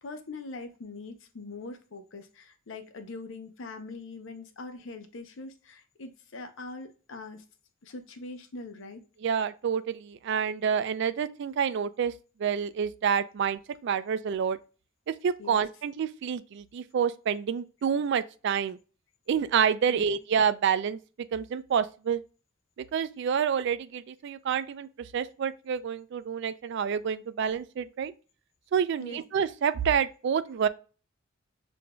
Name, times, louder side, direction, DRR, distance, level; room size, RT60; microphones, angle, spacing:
voice 1, 0.0-7.5 7.8-9.0 15.4-15.7 19.9-20.2 29.0-29.2, left 3 dB, 65° left, 0.6 m, -42 dB
voice 2, 9.2-12.1 12.4-14.6 15.1-18.8 19.3-21.0 21.3-22.2 22.9-28.1 28.7-30.7, right 7 dB, 60° right, 0.3 m, -28 dB
6.6 x 2.5 x 2.2 m
head